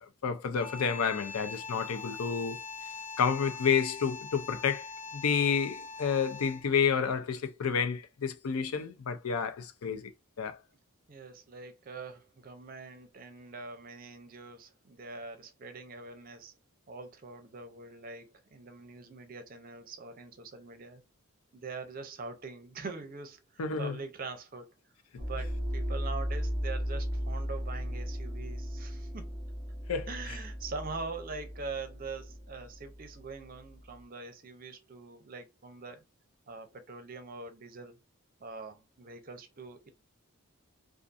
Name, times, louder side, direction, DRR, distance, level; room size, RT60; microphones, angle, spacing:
voice 1, 0.0-2.6 3.2-4.9 5.1-10.1 10.4-10.6 23.6-24.0 29.9-30.1, left 6 dB, 80° left, 0.5 m, -30 dB
sound 1, 0.6-6.8, left 5 dB, 35° left, 0.6 m, -43 dB
voice 2, 11.1-16.5 16.9-21.0 21.5-24.7 25.2-29.4 30.1-36.0 36.5-38.0 38.4-39.9, right 4 dB, 40° right, 0.5 m, -43 dB
sound 2, 25.2-33.9, equal, 5° left, 1.2 m, -36 dB
2.6 x 2.4 x 2.4 m
head